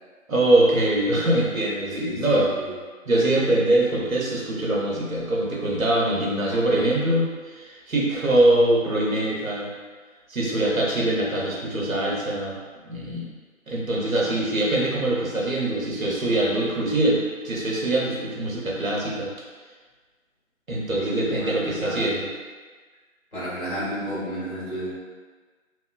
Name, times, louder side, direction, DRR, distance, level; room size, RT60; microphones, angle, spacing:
voice 1, 0.3-2.5 3.1-9.7 10.3-12.6 12.8-13.3 13.7-19.3 20.7-22.3, right 1 dB, 80° right, -4 dB, 0.8 m, -23 dB
voice 2, 2.0-2.7 21.0-22.1 23.3-24.9, equal, 40° left, -11 dB, 1.4 m, -32 dB
3.0 x 2.2 x 2.3 m, 1.4 s
figure-of-eight pair, 170°, 41 cm